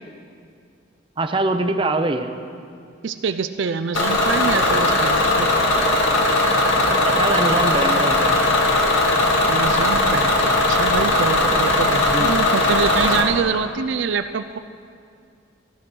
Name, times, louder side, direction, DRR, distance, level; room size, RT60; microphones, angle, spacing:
voice 1, 1.2-2.3 6.9-8.5 12.0-12.3, right 2 dB, 25° right, 7 dB, 0.7 m, -23 dB
voice 2, 3.0-5.5 9.5-14.6, right 5 dB, 70° right, 10 dB, 0.4 m, -25 dB
Bus / Engine, 3.9-13.2, left 2 dB, 85° left, 1.9 m, -18 dB
14.5 x 11.5 x 6.1 m, 2.3 s
head